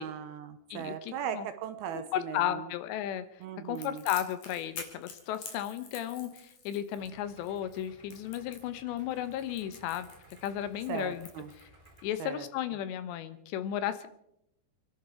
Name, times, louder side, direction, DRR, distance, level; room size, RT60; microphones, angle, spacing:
voice 1, 0.0-2.6 3.4-4.0 10.9-11.5 12.2-12.5, right 9 dB, 75° right, 9 dB, 2.5 m, -38 dB
voice 2, 0.7-1.5 1.9-3.2 3.6-10.1 10.4-11.3 11.6-11.7 12.0-14.1, left 11 dB, 80° left, 11 dB, 3.2 m, -34 dB
Crackle, 3.8-12.0, left 5 dB, 50° left, 3.8 m, -47 dB
Idling, 7.0-12.1, right 2 dB, 25° right, 3.2 m, -58 dB
30.0 x 11.0 x 4.4 m, 0.80 s
omnidirectional pair, 5.1 m